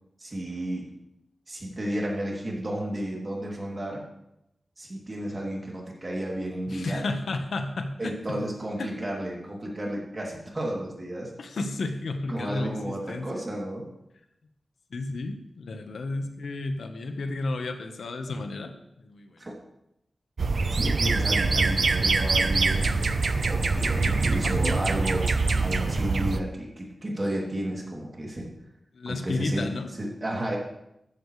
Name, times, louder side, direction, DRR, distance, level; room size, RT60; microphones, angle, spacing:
voice 1, 0.2-0.9 1.5-4.0 4.8-7.0 8.0-11.3 12.3-13.9 19.4-19.5 20.7-22.9 23.5-28.5 29.1-29.7 30.0-30.6, right 1 dB, 30° right, -2 dB, 3.0 m, -32 dB
voice 2, 6.7-8.4 8.8-8.9 11.4-13.4 14.9-18.7 19.0-19.4 20.5-20.6 24.0-24.8 28.9-29.9, left 2 dB, 85° left, 5 dB, 1.3 m, -32 dB
sound 1, 20.4-26.4, right 3 dB, 55° right, 0.8 m, -24 dB
14.0 x 13.5 x 3.3 m, 0.82 s
wide cardioid pair, 145°, 0 cm